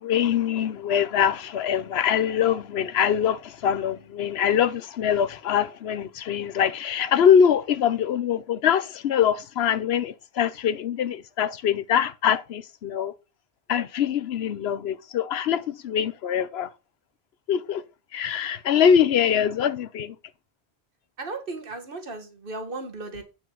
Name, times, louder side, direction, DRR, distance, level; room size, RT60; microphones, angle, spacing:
voice 1, 0.0-13.1 13.7-16.7 17.5-17.8 18.1-20.1, left 8 dB, 80° left, 0.9 m, -23 dB
voice 2, 21.2-23.2, right 3 dB, 60° right, 1.8 m, -35 dB
8.6 x 7.5 x 3.9 m
omnidirectional pair, 1.1 m